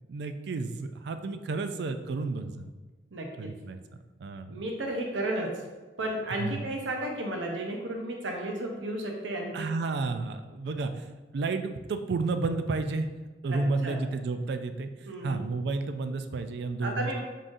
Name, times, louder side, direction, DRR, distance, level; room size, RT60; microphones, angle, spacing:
voice 1, 0.1-2.6 3.4-3.8 4.2-4.5 6.4-6.6 9.5-11.0 11.3-13.1 13.4-14.9 15.2-17.2, right 3 dB, 65° right, 8 dB, 0.3 m, -31 dB
voice 2, 3.1-3.5 4.5-5.6 6.0-9.6 13.5-14.0 15.1-15.4 16.8-17.2, right 1 dB, 85° right, 1 dB, 0.7 m, -33 dB
5.5 x 3.7 x 2.6 m, 1.2 s
head